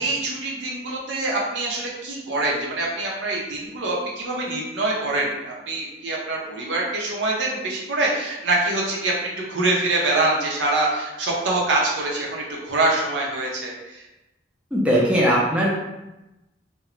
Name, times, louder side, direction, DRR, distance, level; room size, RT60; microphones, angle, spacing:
voice 1, 0.0-9.1 9.5-14.0, right 2 dB, 80° right, -3 dB, 0.7 m, -24 dB
voice 2, 14.7-15.8, equal, 5° right, -5 dB, 0.4 m, -19 dB
2.5 x 2.2 x 3.0 m, 0.98 s
head